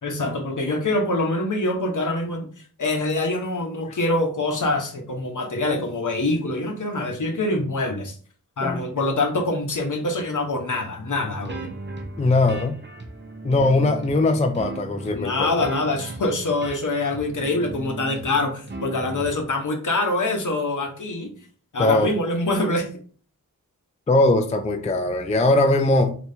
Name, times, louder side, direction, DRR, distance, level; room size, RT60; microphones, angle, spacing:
voice 1, 0.0-2.5 2.8-8.2 8.6-11.7 15.1-21.3 21.7-22.9, left 2 dB, 60° left, 3 dB, 0.9 m, -25 dB
sound 1, 11.2-19.3, right 2 dB, 30° right, 0.7 m, -37 dB
voice 2, 12.2-12.8 13.4-15.5 21.8-22.1 24.1-26.2, left 2 dB, 20° left, 7 dB, 0.3 m, -20 dB
3.4 x 2.9 x 2.7 m, 0.43 s
wide cardioid pair, 55°, 35 cm